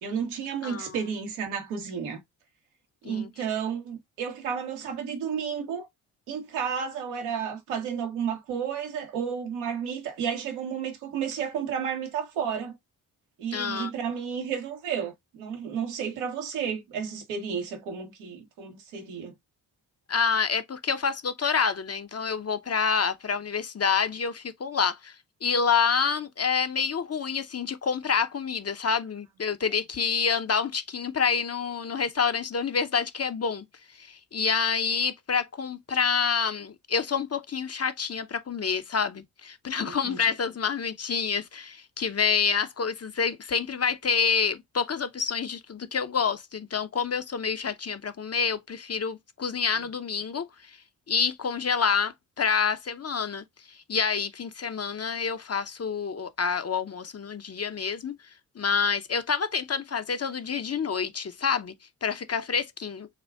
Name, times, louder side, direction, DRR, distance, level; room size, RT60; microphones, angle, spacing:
voice 1, 0.0-2.2 3.0-5.9 6.3-12.8 13.4-19.3 39.8-40.2, right 7 dB, 85° right, 1.4 m, -32 dB
voice 2, 0.6-1.0 3.0-3.3 13.5-13.9 20.1-25.1 25.4-33.6 34.0-50.4 51.1-58.2 58.6-61.7 62.0-63.1, left 6 dB, 30° left, 0.7 m, -27 dB
6.7 x 2.4 x 2.4 m
hypercardioid pair, 40°, 48 cm